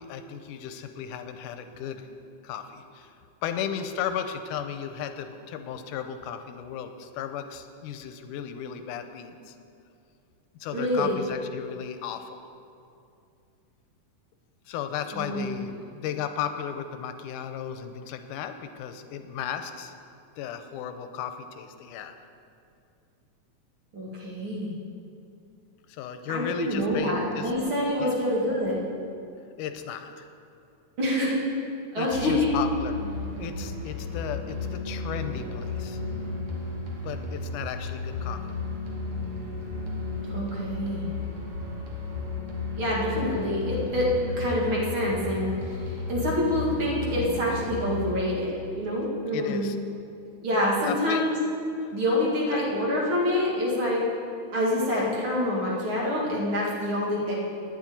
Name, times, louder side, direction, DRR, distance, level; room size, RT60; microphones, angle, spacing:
voice 1, 0.0-2.1 2.4-3.1 3.4-9.6 10.6-12.4 14.7-19.9 20.4-22.2 25.9-27.5 28.0-28.1 29.6-30.3 32.0-32.9 33.4-36.0 37.0-38.4 49.3-49.8 50.8-51.2 51.8-51.9, left 8 dB, 90° left, 8 dB, 2.2 m, -35 dB
voice 2, 10.7-11.2 15.1-15.6 23.9-24.7 26.3-28.8 31.0-31.4 31.9-32.5 40.3-41.1 42.8-44.1 44.4-49.7 50.4-51.3 51.9-54.0 54.5-57.4, left 1 dB, 45° right, -5 dB, 2.6 m, -26 dB
sound 1, 32.1-48.1, left 3 dB, 60° right, 2.3 m, -34 dB
9.7 x 7.4 x 9.3 m, 2.5 s
omnidirectional pair, 3.6 m